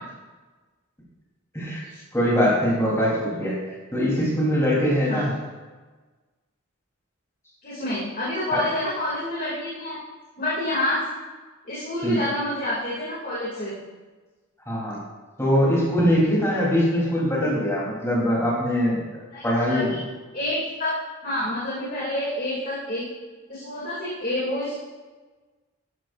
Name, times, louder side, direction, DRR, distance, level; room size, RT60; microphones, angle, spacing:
voice 1, 2.1-3.6 3.9-5.3 8.5-8.7 12.0-12.2 14.7-15.0 15.4-19.0 19.4-20.0, equal, 15° left, -5 dB, 3.5 m, -22 dB
voice 2, 7.6-10.0 10.4-11.0 11.6-13.8 19.3-20.0 20.3-20.9 21.2-23.1 23.5-24.8, left 1 dB, 45° left, -8 dB, 2.6 m, -28 dB
12.5 x 11.5 x 2.6 m, 1.3 s
head